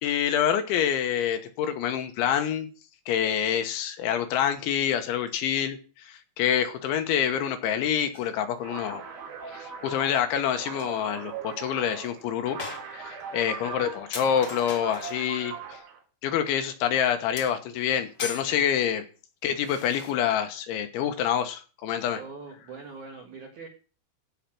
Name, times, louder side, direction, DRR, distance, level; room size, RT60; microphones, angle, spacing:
voice 1, 0.0-2.7 3.1-9.0 9.5-12.6 12.9-15.8 16.2-19.0 19.4-22.2, left 9 dB, 75° left, 3.4 m, -27 dB
sound 1, 8.1-8.3 10.3-10.4 10.6-10.9 11.5-11.6 12.0-12.1 12.6-13.3 13.7-13.8 14.1-15.2 17.4-18.5 19.6-20.1, left 4 dB, 50° left, 1.2 m, -39 dB
sound 2, 8.6-16.0, right 6 dB, 85° right, 5.4 m, -40 dB
voice 2, 22.1-23.7, right 4 dB, 60° right, 2.1 m, -42 dB
16.0 x 5.8 x 6.0 m
omnidirectional pair, 5.6 m